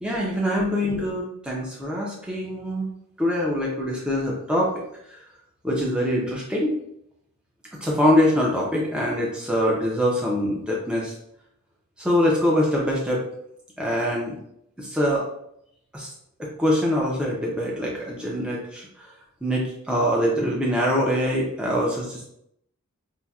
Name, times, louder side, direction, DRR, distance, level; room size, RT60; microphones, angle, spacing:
voice 1, 0.0-2.9 3.2-4.7 5.6-6.8 7.8-11.1 12.0-13.2 13.8-14.4 14.8-15.3 15.9-16.1 16.4-19.1 19.4-22.3, equal, 5° right, -4 dB, 0.6 m, -24 dB
5.6 x 2.2 x 2.3 m, 0.75 s
head